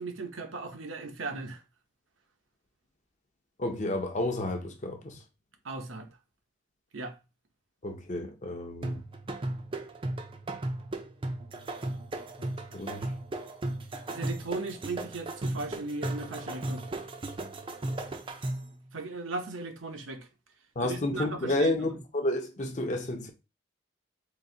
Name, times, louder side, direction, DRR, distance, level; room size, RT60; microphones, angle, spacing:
voice 1, 0.0-1.6 5.6-6.1 6.9-7.1 14.1-16.9 18.9-20.3 20.8-21.8, right 3 dB, 80° right, 0.8 m, -37 dB
voice 2, 3.6-5.2 7.8-9.0 12.4-13.1 20.8-23.3, left 1 dB, 40° left, 0.7 m, -31 dB
sound 1, 8.8-18.8, right 2 dB, 25° right, 0.4 m, -36 dB
3.9 x 2.6 x 3.8 m
head